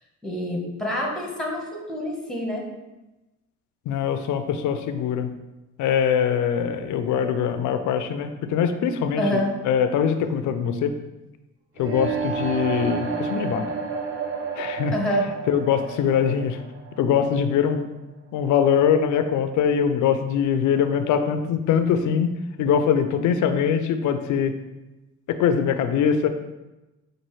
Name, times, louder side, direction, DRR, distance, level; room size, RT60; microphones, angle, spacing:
voice 1, 0.2-2.7 9.2-9.5 14.9-15.3, equal, ahead, 0 dB, 0.9 m, -26 dB
voice 2, 3.9-5.3 5.8-10.9 11.8-13.6 14.6-14.9 15.5-16.6 17.0-17.9 18.3-22.3 22.6-24.6 25.3-26.3, left 7 dB, 75° left, 9 dB, 0.4 m, -22 dB
sound 1, 11.8-17.7, right 5 dB, 45° right, 0.6 m, -31 dB
5.4 x 2.6 x 3.0 m, 1.0 s
cardioid pair, 90°, 30 cm